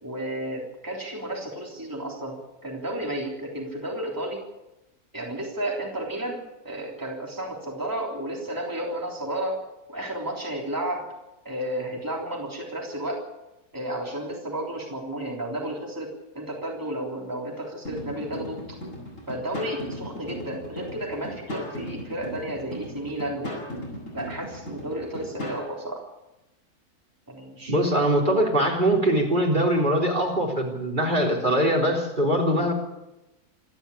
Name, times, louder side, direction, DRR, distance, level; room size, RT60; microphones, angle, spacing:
voice 1, 0.0-4.5 5.1-11.1 11.5-13.2 13.7-18.6 19.3-23.6 24.1-26.1 27.3-28.1, right 1 dB, 10° right, -2 dB, 3.5 m, -32 dB
sound 1, 17.8-25.7, equal, 55° left, 8.5 m, -37 dB
voice 2, 27.7-32.7, right 1 dB, 30° right, 2 dB, 4.2 m, -22 dB
27.5 x 12.0 x 8.6 m, 0.95 s
omnidirectional pair, 1.6 m